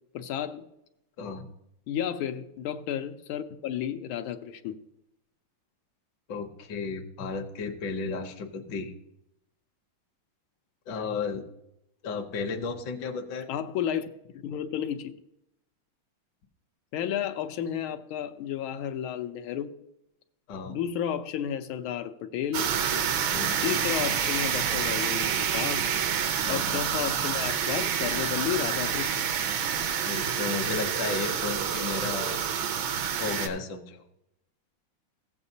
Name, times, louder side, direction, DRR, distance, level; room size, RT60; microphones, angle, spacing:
voice 1, 0.1-0.6 1.9-4.8 13.5-14.1 14.4-15.1 16.9-19.7 20.7-22.7 23.6-25.9 26.5-29.1, left 9 dB, 85° left, 1.6 m, -32 dB
voice 2, 1.2-1.5 6.3-8.9 10.9-11.4 12.0-13.5 20.5-20.8 23.3-23.5 26.4-26.8 30.0-32.4 33.2-34.0, left 5 dB, 65° left, 1.4 m, -34 dB
sound 1, 22.5-33.5, right 8 dB, 80° right, 1.6 m, -28 dB
15.0 x 7.9 x 2.7 m
omnidirectional pair, 2.3 m